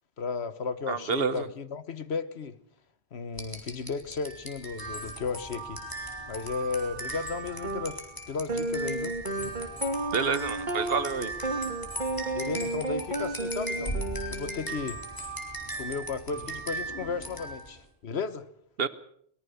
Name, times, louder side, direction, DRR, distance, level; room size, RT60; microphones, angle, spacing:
voice 1, 0.2-2.6 3.1-5.8 6.3-8.0 8.3-9.2 12.3-13.9 14.3-15.0 15.8-18.5, left 5 dB, 80° left, 1.5 m, -34 dB
voice 2, 0.9-1.5 10.1-11.3 18.8-18.9, right 5 dB, 65° right, 1.2 m, -28 dB
sound 1, 3.3-17.8, right 2 dB, 20° left, 4.0 m, -37 dB
sound 2, 7.6-7.8 8.5-14.8, right 1 dB, 45° right, 2.3 m, -33 dB
22.5 x 19.5 x 6.9 m
omnidirectional pair, 1.1 m